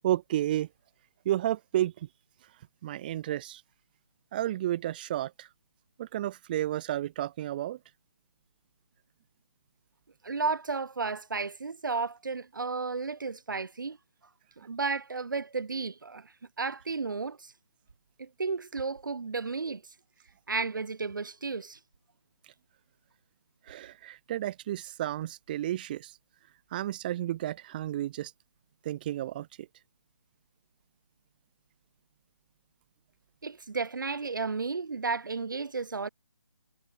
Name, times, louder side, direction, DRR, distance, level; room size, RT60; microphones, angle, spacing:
voice 1, 0.0-0.7 1.2-2.1 2.8-3.6 4.3-5.5 6.0-7.8 23.7-26.1 26.7-28.3 28.8-29.7, right 13 dB, 20° right, 1.6 m, -32 dB
voice 2, 10.2-14.0 14.6-17.5 18.2-19.8 20.5-21.8 33.4-36.1, right 4 dB, 50° right, 1.4 m, -33 dB
figure-of-eight pair, 150°, 13 cm